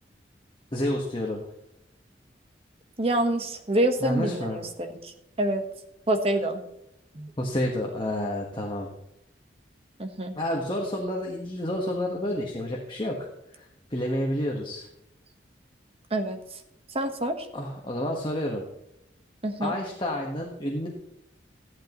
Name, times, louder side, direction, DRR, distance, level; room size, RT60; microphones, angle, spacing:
voice 1, 0.7-1.4 4.0-4.6 7.4-8.9 10.4-13.3 13.5-13.6 13.9-14.9 17.5-18.6 19.6-20.9, left 1 dB, 25° left, 0 dB, 1.4 m, -29 dB
voice 2, 3.0-5.1 5.4-5.6 6.1-6.6 7.1-7.3 10.0-10.3 16.1-16.4 16.9-17.5 19.4-19.7, right 1 dB, 30° right, 6 dB, 1.2 m, -26 dB
14.5 x 11.5 x 3.0 m, 0.83 s
head